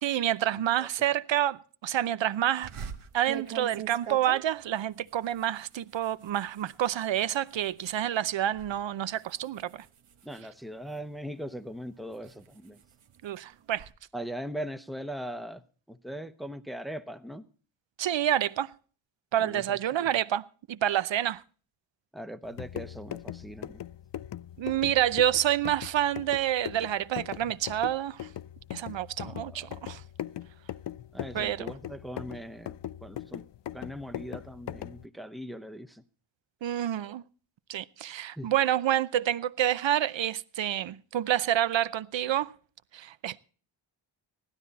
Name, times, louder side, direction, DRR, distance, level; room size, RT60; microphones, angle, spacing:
voice 1, 0.0-2.7 3.1-9.9 13.2-13.9 18.0-18.7 19.3-21.4 24.6-28.3 28.7-30.0 31.3-31.7 36.6-37.2 37.7-42.5 42.9-43.4, right 11 dB, 65° right, 0.7 m, -28 dB
voice 2, 0.5-0.9 10.2-12.8 14.1-15.6 15.9-17.4 19.4-20.1 22.1-23.8 29.2-29.7 31.1-33.4 33.7-36.0 38.4-38.5, equal, ahead, 0.7 m, -40 dB
sound 1, 2.6-8.0 8.4-8.8 9.1-11.2 11.7-13.9, right 7 dB, 85° right, 1.2 m, -44 dB
sound 2, 22.4-35.1, left 11 dB, 60° left, 0.5 m, -40 dB
16.5 x 12.5 x 4.0 m
wide cardioid pair, 130°, 49 cm